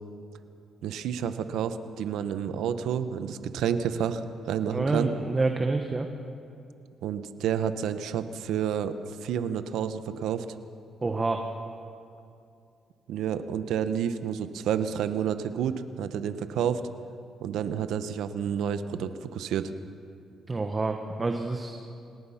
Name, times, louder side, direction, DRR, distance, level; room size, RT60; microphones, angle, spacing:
voice 1, 0.8-5.1 7.0-8.9 9.2-10.5 13.1-16.8 17.4-19.7, right 8 dB, 85° right, 11 dB, 1.0 m, -30 dB
voice 2, 4.7-6.1 11.0-11.5 20.5-21.7, right 3 dB, 25° right, 4 dB, 1.4 m, -28 dB
27.0 x 18.5 x 5.8 m, 2.5 s
cardioid pair, 90°, 0 cm